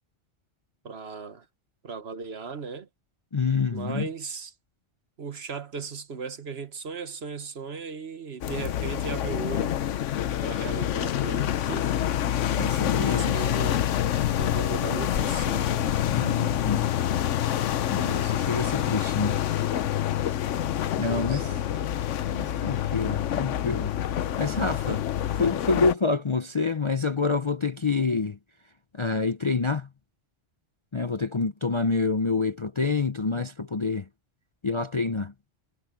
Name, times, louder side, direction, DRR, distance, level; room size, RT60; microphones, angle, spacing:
voice 1, 0.8-1.4 1.8-2.9 3.7-4.5 5.2-9.8 10.4-11.9 12.9-13.8 14.4-15.9 21.1-21.9, right 5 dB, 60° right, 1.5 m, -37 dB
voice 2, 3.3-4.1 12.6-13.3 16.1-16.9 17.9-19.4 21.0-21.5 22.3-23.9 24.4-25.0 25.4-28.4 29.0-29.9 30.9-34.0 34.6-35.3, left 4 dB, 35° left, 0.5 m, -27 dB
sound 1, 8.4-25.9, left 11 dB, 90° left, 1.1 m, -27 dB
omnidirectional pair, 1.2 m